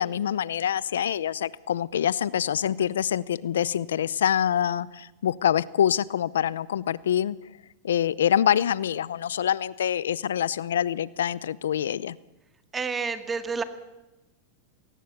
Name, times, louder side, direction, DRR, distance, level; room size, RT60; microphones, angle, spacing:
voice 1, 0.0-7.4 7.8-12.2, left 9 dB, 90° left, 21 dB, 0.7 m, -25 dB
voice 2, 12.7-13.6, right 5 dB, 15° right, 10 dB, 1.9 m, -29 dB
20.0 x 18.5 x 8.3 m, 0.99 s
hypercardioid pair, 125°, 0 cm